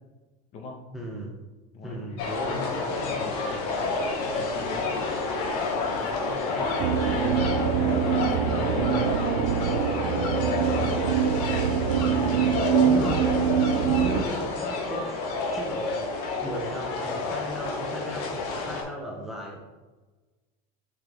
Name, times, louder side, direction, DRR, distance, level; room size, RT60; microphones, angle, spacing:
voice 1, 0.9-1.4 1.8-2.6 12.8-13.3 13.8-15.2 15.5-16.1 16.4-19.6, equal, ahead, -2 dB, 0.6 m, -36 dB
voice 2, 1.7-2.2 2.5-5.1 5.8-7.0 7.3-7.6 8.0-9.4 10.1-11.0, left 3 dB, 35° left, 3 dB, 1.2 m, -39 dB
sound 1, 2.2-18.8, left 3 dB, 70° left, 2.0 m, -29 dB
sound 2, 6.8-14.2, right 8 dB, 70° right, 0.4 m, -24 dB
7.3 x 5.1 x 3.4 m, 1.2 s
cardioid pair, 170°, 20 cm